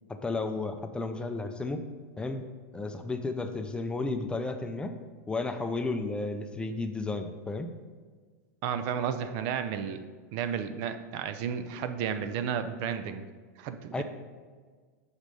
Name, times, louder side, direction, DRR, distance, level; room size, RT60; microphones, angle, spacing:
voice 1, 0.2-1.8 2.2-2.4 2.7-4.9 5.3-7.7 13.9-14.0, left 3 dB, 10° left, 7 dB, 0.5 m, -33 dB
voice 2, 8.6-13.2 13.6-14.0, right 8 dB, 50° right, 10 dB, 0.5 m, -33 dB
6.4 x 5.1 x 5.3 m, 1.5 s
hypercardioid pair, 120°, 9 cm